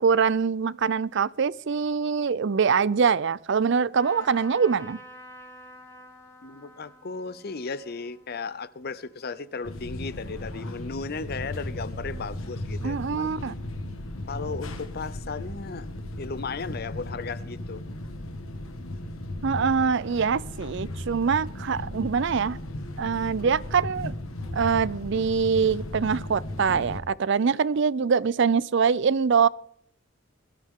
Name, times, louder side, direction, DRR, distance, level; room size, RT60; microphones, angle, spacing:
voice 1, 0.0-5.0 12.8-13.5 19.4-22.6 23.0-24.2 24.5-29.5, right 6 dB, 60° right, 0.5 m, -24 dB
Trumpet, 4.0-9.5, left 1 dB, 15° left, 2.3 m, -49 dB
voice 2, 6.4-13.3 14.3-15.9 16.2-17.8, left 4 dB, 50° left, 0.6 m, -35 dB
sound 1, 9.6-27.0, left 1 dB, 85° left, 1.7 m, -36 dB
21.5 x 13.0 x 3.7 m
head